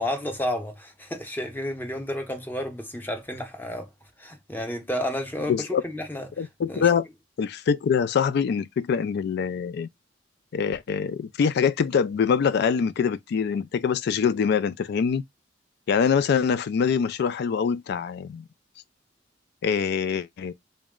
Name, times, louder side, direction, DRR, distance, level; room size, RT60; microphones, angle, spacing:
voice 1, 0.0-3.9 4.2-6.9, left 1 dB, 10° left, 0.7 m, -31 dB
voice 2, 5.5-5.8 6.4-7.1 7.4-9.9 10.5-15.2 15.9-18.4 19.6-20.5, left 6 dB, 60° left, 0.3 m, -24 dB
4.1 x 2.1 x 3.5 m
head